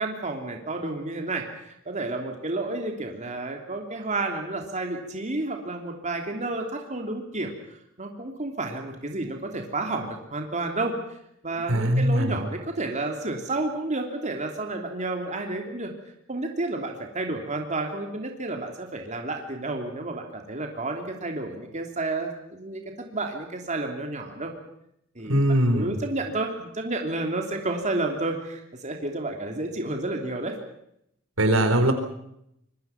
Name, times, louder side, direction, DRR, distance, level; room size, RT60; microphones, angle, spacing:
voice 1, 0.0-7.5 8.0-11.2 11.4-15.9 16.3-22.8 23.1-24.5 25.1-30.6, right 2 dB, 35° right, 3 dB, 3.1 m, -31 dB
voice 2, 11.7-12.3 25.3-25.9 31.4-31.9, right 1 dB, 80° right, 7 dB, 4.2 m, -21 dB
26.0 x 23.0 x 5.9 m, 0.76 s
head